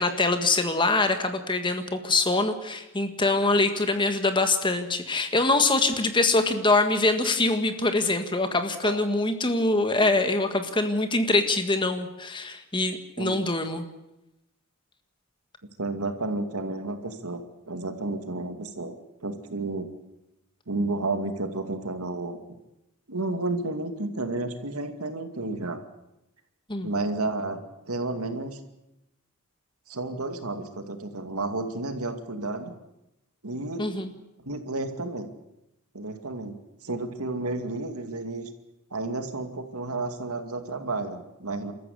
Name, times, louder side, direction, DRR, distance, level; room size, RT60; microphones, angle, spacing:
voice 1, 0.0-13.9 26.7-26.9 33.8-34.1, left 2 dB, 20° left, 7 dB, 1.7 m, -24 dB
voice 2, 15.8-19.0 19.2-19.9 20.7-22.4 23.1-25.8 26.8-27.6 27.9-28.6 29.9-32.7 33.4-33.9 34.4-35.3 35.9-38.5 38.9-41.7, right 2 dB, 80° right, 7 dB, 2.3 m, -31 dB
28.5 x 14.0 x 8.4 m, 0.91 s
head